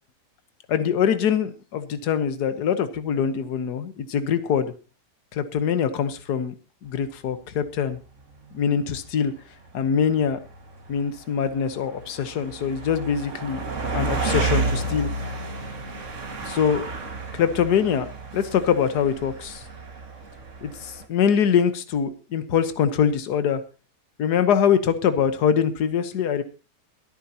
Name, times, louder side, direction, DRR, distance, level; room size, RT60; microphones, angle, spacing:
voice 1, 0.7-4.7 5.3-6.5 6.8-8.0 8.5-9.3 9.7-10.4 10.9-13.6 13.9-15.1 16.5-16.9 17.3-19.6 20.6-23.6 24.2-26.4, left 7 dB, 70° left, 10 dB, 1.7 m, -23 dB
sound 1, 7.0-7.1 7.8-7.9 8.2-9.3 9.6-21.1, right 3 dB, 45° right, 2.3 m, -32 dB
23.5 x 9.1 x 2.9 m, 0.31 s
omnidirectional pair, 1.8 m